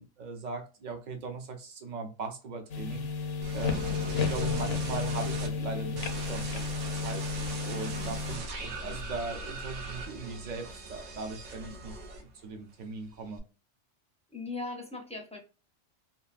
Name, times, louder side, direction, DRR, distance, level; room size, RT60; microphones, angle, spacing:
voice 1, 0.0-3.1 3.5-6.6 6.9-7.3 7.6-12.0 12.3-13.4, right 4 dB, 55° right, 0.5 m, -39 dB
sound 1, 2.7-8.4, left 5 dB, 75° left, 0.9 m, -32 dB
sound 2, 3.4-5.5 5.9-12.5 12.8-13.4, right 2 dB, 85° right, 1.1 m, -40 dB
voice 2, 11.7-12.0 14.3-15.4, left 3 dB, 10° left, 0.4 m, -40 dB
2.8 x 2.4 x 2.4 m
omnidirectional pair, 1.3 m